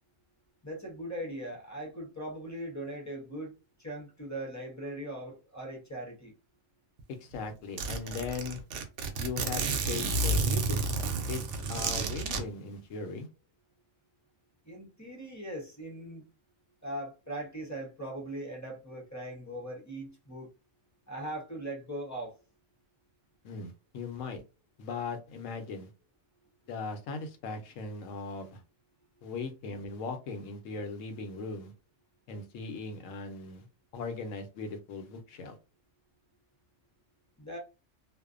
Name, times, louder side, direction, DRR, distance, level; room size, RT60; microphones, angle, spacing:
voice 1, 0.6-6.3 14.6-16.2 16.8-20.5 21.1-22.3 37.4-37.6, right 1 dB, 20° left, 0.5 m, -40 dB
Zipper (clothing), 7.0-7.1 7.3-7.4 7.8-12.4, right 3 dB, 75° right, 0.9 m, -31 dB
voice 2, 7.1-8.6 9.2-10.8 11.3-11.4 11.7-13.3 23.4-24.4 24.8-25.9 26.7-28.6 29.2-31.7 32.3-33.7 33.9-35.6, left 4 dB, 85° left, 1.0 m, -38 dB
2.5 x 2.1 x 2.4 m
omnidirectional pair, 1.3 m